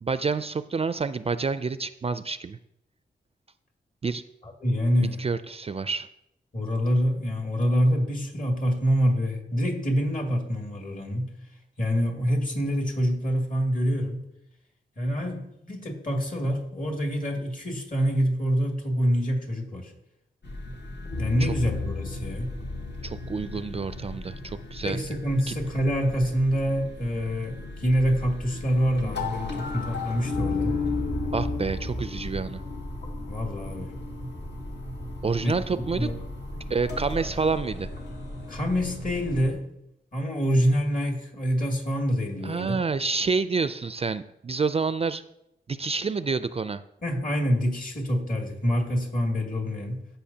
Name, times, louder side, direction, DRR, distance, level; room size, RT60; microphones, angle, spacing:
voice 1, 0.0-2.6 4.0-4.2 5.0-6.1 21.4-21.5 23.0-25.0 25.5-25.6 31.3-32.6 35.2-36.1 36.7-37.9 42.4-45.2 45.7-46.8, right 4 dB, 35° right, 13 dB, 0.4 m, -28 dB
voice 2, 4.4-5.2 6.5-11.3 11.8-14.2 15.0-19.9 21.2-22.5 24.8-30.8 33.3-33.9 35.4-35.6 36.0-36.2 38.5-39.7 40.1-42.8 47.0-50.0, equal, 50° left, 1 dB, 2.4 m, -26 dB
sound 1, 20.4-39.5, left 2 dB, 70° left, 1.5 m, -34 dB
14.5 x 5.7 x 2.8 m, 0.81 s
cardioid pair, 60°, 18 cm